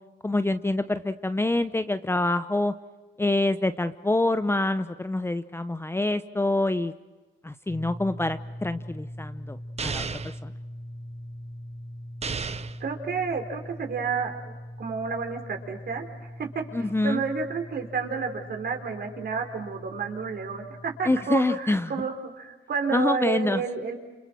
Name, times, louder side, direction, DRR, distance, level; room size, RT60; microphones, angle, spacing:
voice 1, 0.2-2.7 3.2-6.9 7.4-10.5 16.7-17.2 21.1-22.1 22.9-23.6, left 2 dB, 10° left, 11 dB, 0.9 m, -26 dB
sound 1, 7.7-21.3, equal, 45° left, 4.9 m, -41 dB
sound 2, 9.8-10.4 12.2-12.8, right 5 dB, 30° right, 0.9 m, -32 dB
voice 2, 12.8-24.0, right 5 dB, 50° right, 4 dB, 4.8 m, -31 dB
28.5 x 28.5 x 6.3 m, 1.2 s
cardioid pair, 90°, 20 cm